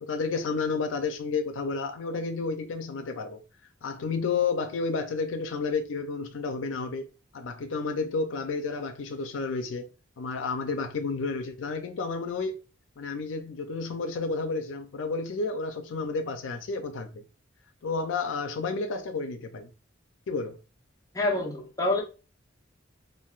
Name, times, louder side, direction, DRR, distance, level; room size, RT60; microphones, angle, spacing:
voice 1, 0.0-3.4 3.8-7.1 7.3-9.9 10.2-12.6 13.0-17.2 17.8-19.7 20.3-20.6, left 4 dB, 85° left, 0.4 m, -31 dB
voice 2, 21.1-22.0, left 2 dB, 20° left, 0.8 m, -26 dB
3.3 x 2.5 x 2.3 m
head